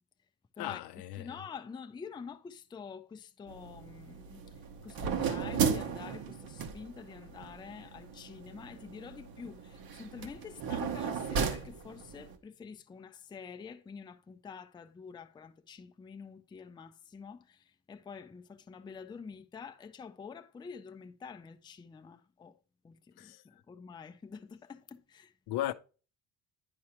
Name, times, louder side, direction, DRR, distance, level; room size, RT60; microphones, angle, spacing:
voice 1, 0.6-1.4 23.2-23.4 25.5-25.7, left 14 dB, 75° left, 0.5 m, -36 dB
voice 2, 1.2-4.4 4.8-22.6 22.8-25.3, left 6 dB, 10° left, 0.3 m, -47 dB
sound 1, 3.5-12.4, right 6 dB, 60° right, 0.9 m, -36 dB
9.7 x 4.8 x 2.8 m
cardioid pair, 115°, 40 cm